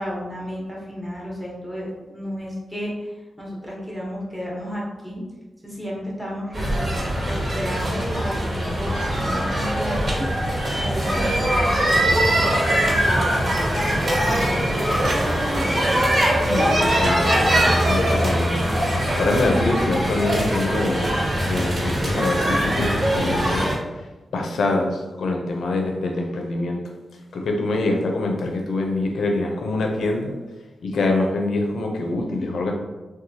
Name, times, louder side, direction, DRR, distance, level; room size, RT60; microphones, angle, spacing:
voice 1, 0.0-3.1 3.4-5.2 5.6-7.0 7.2-16.0, equal, 5° right, -5 dB, 0.9 m, -32 dB
sound 1, 6.5-23.7, right 1 dB, 55° right, 1.5 m, -22 dB
sound 2, 14.1-14.6 15.0-16.4 17.1-18.3, right 3 dB, 90° right, 0.3 m, -36 dB
voice 2, 16.4-18.6 18.8-23.7 24.3-26.8 27.3-30.3 30.8-32.7, left 2 dB, 85° left, 2 dB, 0.5 m, -25 dB
2.9 x 2.2 x 2.7 m, 1.1 s
cardioid pair, 75°, 0 cm